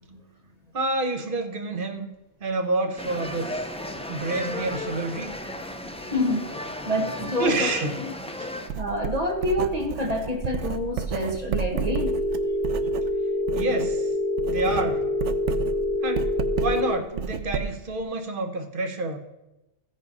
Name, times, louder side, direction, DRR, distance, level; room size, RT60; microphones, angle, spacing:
voice 1, 0.7-2.1 2.4-3.6 4.1-5.3 7.4-8.0 8.4-8.5 13.5-14.1 14.5-15.1 16.0-19.2, right 2 dB, 50° right, 6 dB, 1.2 m, -28 dB
sound 1, 3.0-8.7, left 1 dB, 10° left, 0.5 m, -34 dB
voice 2, 6.1-6.6 6.8-7.7 8.8-12.2, left 1 dB, 35° right, 1 dB, 1.6 m, -27 dB
Writing, 8.7-13.9 14.2-18.0, right 6 dB, 90° right, 0.9 m, -31 dB
Telephone, 11.9-16.9, left 2 dB, 50° left, 2.6 m, -26 dB
15.0 x 5.4 x 5.3 m, 0.98 s
omnidirectional pair, 1.2 m